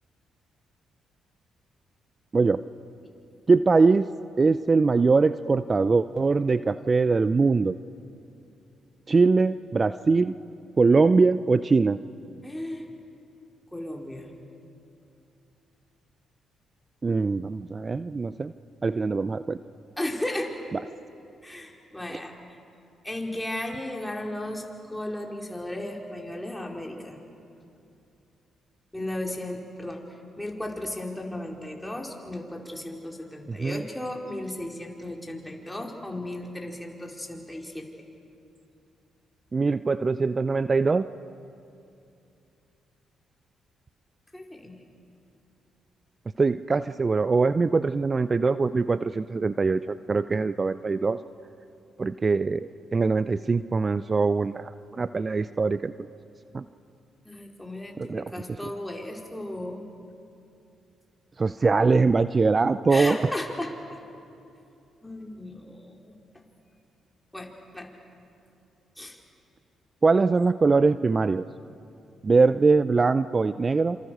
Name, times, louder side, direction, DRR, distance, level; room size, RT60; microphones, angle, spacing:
voice 1, 3.5-4.1 4.4-7.8 9.1-10.3 10.8-12.0 17.0-18.5 18.8-19.6 22.1-22.2 33.5-33.8 39.5-41.1 46.4-51.2 52.0-54.7 55.0-55.9 56.5-56.6 58.0-58.3 61.4-63.2 70.0-71.5 72.2-74.0, right 4 dB, 35° right, 14 dB, 0.6 m, -22 dB
voice 2, 12.4-12.9 13.7-14.3 20.0-20.5 21.4-22.3 23.0-27.2 28.9-30.0 30.4-37.9 44.3-44.8 57.2-59.9 62.9-64.0 65.0-66.2 67.3-67.9 69.0-69.2, left 1 dB, 10° left, 0 dB, 4.8 m, -35 dB
27.0 x 26.5 x 6.6 m, 2.6 s
hypercardioid pair, 45°, 0 cm